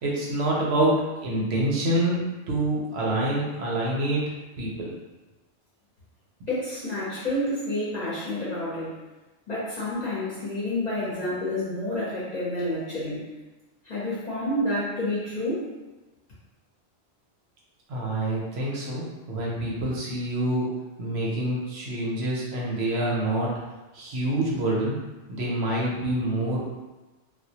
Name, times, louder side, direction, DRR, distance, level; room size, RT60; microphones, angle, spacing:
voice 1, 0.0-4.9 17.9-20.7 21.0-23.5 23.9-25.0 25.3-26.7, right 1 dB, 70° right, -4 dB, 0.8 m, -26 dB
voice 2, 6.5-8.9 9.5-13.3 13.8-15.6, left 1 dB, 45° left, -9 dB, 0.6 m, -29 dB
2.1 x 2.1 x 2.7 m, 1.1 s
omnidirectional pair, 1.2 m